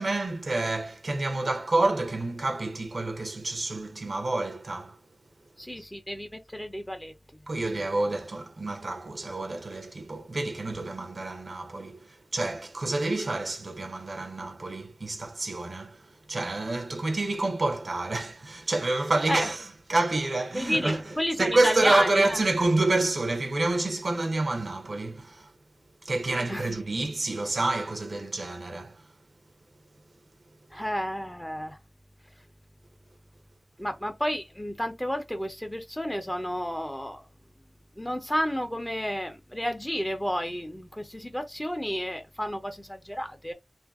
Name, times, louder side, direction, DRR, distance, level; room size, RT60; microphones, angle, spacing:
voice 1, 0.0-5.0 7.5-25.5 26.0-29.0, right 2 dB, 75° right, 0.6 m, -28 dB
voice 2, 5.6-7.4 19.3-19.5 20.5-22.4 26.5-26.7 30.7-31.8 33.8-37.3 37.9-43.5, equal, 15° left, 0.6 m, -31 dB
2.6 x 2.5 x 2.4 m
wide cardioid pair, 75°, 0 cm